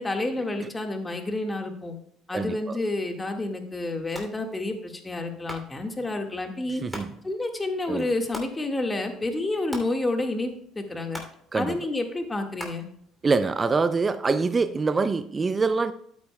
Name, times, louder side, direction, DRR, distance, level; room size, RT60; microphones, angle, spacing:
voice 1, 0.0-2.0 2.3-6.8 7.2-11.2 11.5-12.8, left 2 dB, 20° left, 1.7 m, -29 dB
voice 2, 2.3-2.8 6.8-7.1 7.9-8.1 11.5-11.8 13.2-15.9, right 4 dB, 30° right, 0.4 m, -24 dB
sound 1, 4.0-13.8, equal, 5° left, 2.8 m, -45 dB
12.5 x 8.4 x 2.2 m
hypercardioid pair, 70°, 0 cm